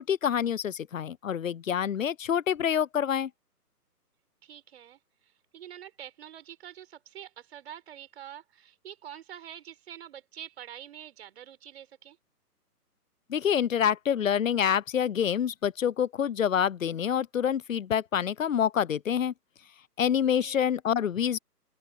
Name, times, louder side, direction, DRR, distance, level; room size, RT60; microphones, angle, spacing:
voice 1, 0.0-3.3 13.3-19.3 20.0-21.4, left 8 dB, 55° left, 0.7 m, -27 dB
voice 2, 4.4-12.2 20.4-20.7, right 10 dB, 40° right, 4.5 m, -46 dB
open air
figure-of-eight pair, 145°, 47 cm